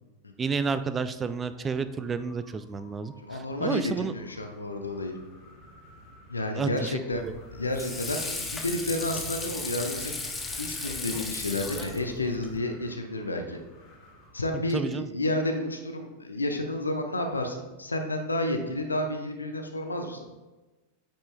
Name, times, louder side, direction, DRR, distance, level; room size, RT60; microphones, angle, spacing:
voice 1, 0.4-4.1 6.5-7.3 14.7-15.1, right 5 dB, 20° right, 12 dB, 0.4 m, -31 dB
Wind, 1.0-14.7, left 1 dB, 40° left, 1.5 m, -53 dB
voice 2, 3.3-5.2 6.3-7.2 7.5-10.1 10.6-13.6 14.3-20.2, left 1 dB, 80° left, 4 dB, 0.7 m, -31 dB
Water / Sink (filling or washing), 7.1-12.6, left 3 dB, 15° left, 0.7 m, -36 dB
8.8 x 5.5 x 2.3 m, 1.1 s
figure-of-eight pair, 90°, 0 cm